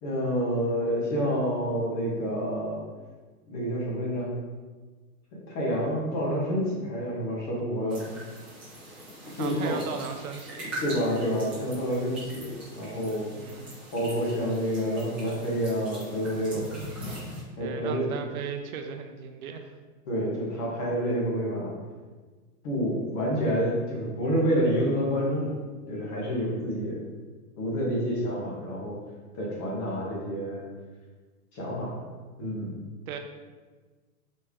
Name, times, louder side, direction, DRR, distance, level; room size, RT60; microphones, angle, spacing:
voice 1, 0.0-2.8 3.5-4.3 5.3-8.0 9.3-9.8 10.6-13.3 13.9-16.7 17.6-18.1 20.1-21.7 22.6-25.6 25.9-27.0 27.6-29.0 29.4-30.7 31.5-31.9 32.4-32.7, equal, 25° left, -4 dB, 1.1 m, -28 dB
sound 1, 7.9-17.4, right 1 dB, 5° right, 0.5 m, -42 dB
voice 2, 9.4-10.7 13.3-13.7 17.6-19.7 33.1-33.2, right 7 dB, 65° right, 6 dB, 0.6 m, -37 dB
4.2 x 3.3 x 3.5 m, 1.3 s
hypercardioid pair, 160°, 47 cm